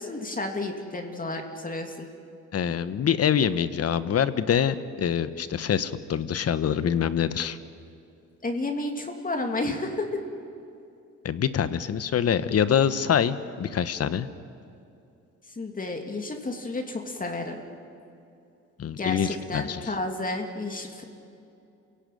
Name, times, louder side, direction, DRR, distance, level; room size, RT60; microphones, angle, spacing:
voice 1, 0.0-2.1 8.4-10.2 15.5-17.6 19.0-21.0, left 2 dB, 30° left, 3 dB, 2.9 m, -31 dB
voice 2, 2.5-7.6 11.2-14.3 18.8-19.9, left 8 dB, 55° left, 13 dB, 1.2 m, -25 dB
28.5 x 17.0 x 9.3 m, 2.7 s
cardioid pair, 90°, 30 cm